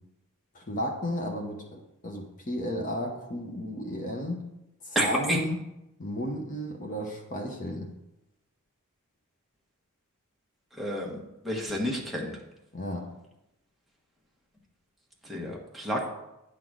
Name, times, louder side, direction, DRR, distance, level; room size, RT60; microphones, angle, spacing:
voice 1, 0.5-4.4 4.8-5.6 6.0-7.9 12.7-13.1, equal, 35° left, 1 dB, 1.0 m, -33 dB
voice 2, 4.9-5.4 10.8-11.2 11.4-12.3 15.2-16.1, equal, ahead, -3 dB, 1.4 m, -29 dB
10.0 x 4.0 x 6.3 m, 0.89 s
head